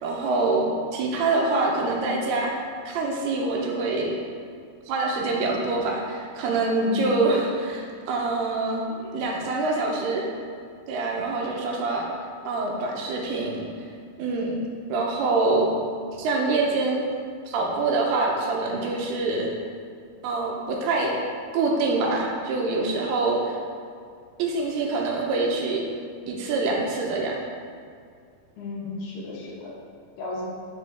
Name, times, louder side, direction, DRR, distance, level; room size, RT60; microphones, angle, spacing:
voice 1, 0.0-2.5 2.9-4.2 4.9-8.9 9.1-10.3 10.9-12.1 12.5-13.7 14.2-14.5 14.9-15.7 16.1-17.0 17.5-19.5 20.2-21.1 21.5-23.6 24.4-25.8 26.3-27.5, right 3 dB, 80° right, -1 dB, 2.9 m, -25 dB
voice 2, 6.8-7.1 8.9-9.1 28.6-29.7 30.2-30.4, left 3 dB, 80° left, -5 dB, 3.4 m, -34 dB
7.3 x 7.3 x 3.5 m, 2.2 s
omnidirectional pair, 4.6 m